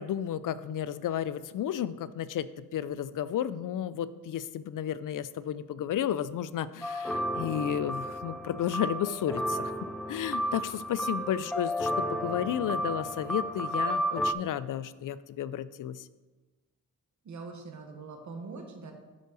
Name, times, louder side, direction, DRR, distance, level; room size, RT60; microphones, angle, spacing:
voice 1, 0.0-16.1, left 10 dB, 70° left, 15 dB, 0.5 m, -33 dB
sound 1, 6.8-14.3, equal, 5° left, 0.4 m, -32 dB
voice 2, 17.2-18.9, right 4 dB, 60° right, 3 dB, 1.3 m, -43 dB
11.5 x 5.4 x 3.9 m, 1.3 s
cardioid pair, 90°, 33 cm